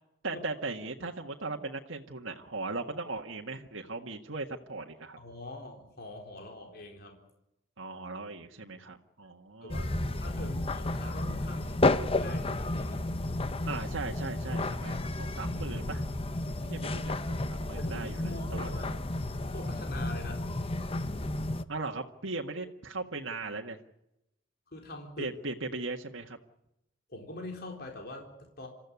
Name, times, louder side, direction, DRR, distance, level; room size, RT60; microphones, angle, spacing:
voice 1, 0.2-5.2 7.8-10.3 13.7-16.0 16.6-18.2 18.5-18.7 21.7-23.8 25.2-26.4, right 3 dB, 80° right, 2 dB, 1.7 m, -38 dB
voice 2, 5.2-7.2 9.6-9.9 10.2-11.8 12.2-13.1 17.8-19.0 19.5-20.5 24.7-25.3 27.1-28.7, left 2 dB, 50° left, 2 dB, 4.0 m, -43 dB
sound 1, 9.7-21.6, left 2 dB, 30° left, 0.9 m, -32 dB
27.0 x 14.5 x 9.6 m, 0.86 s
head